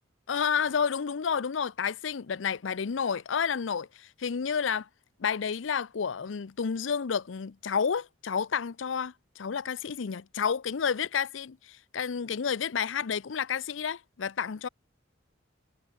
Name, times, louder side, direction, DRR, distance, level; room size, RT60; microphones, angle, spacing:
voice 1, 0.3-4.9 5.2-14.7, left 6 dB, 90° left, 0.6 m, -30 dB
head